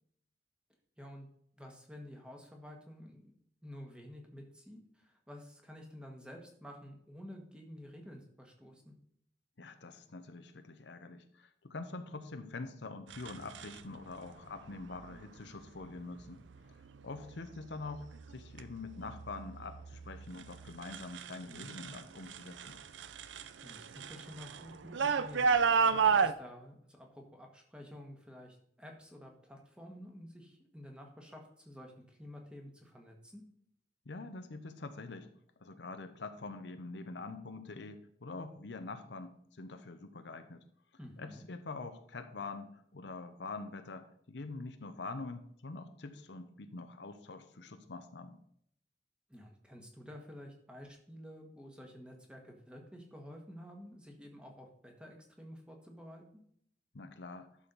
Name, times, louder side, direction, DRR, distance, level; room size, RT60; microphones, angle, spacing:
voice 1, 1.0-1.3 1.6-3.3 3.6-8.9 21.5-22.0 23.6-33.4 41.0-41.5 49.3-56.4, equal, 5° right, 2 dB, 1.4 m, -51 dB
voice 2, 9.6-16.4 17.0-22.8 34.1-35.3 35.6-40.6 41.2-48.4 56.9-57.5, left 3 dB, 70° left, 8 dB, 0.8 m, -45 dB
sound 1, 13.1-13.8 14.9-15.3 15.8-16.3 16.8-17.4 17.7-22.0 22.3-26.3, right 5 dB, 85° right, 0.5 m, -32 dB
11.5 x 6.3 x 4.0 m, 0.68 s
head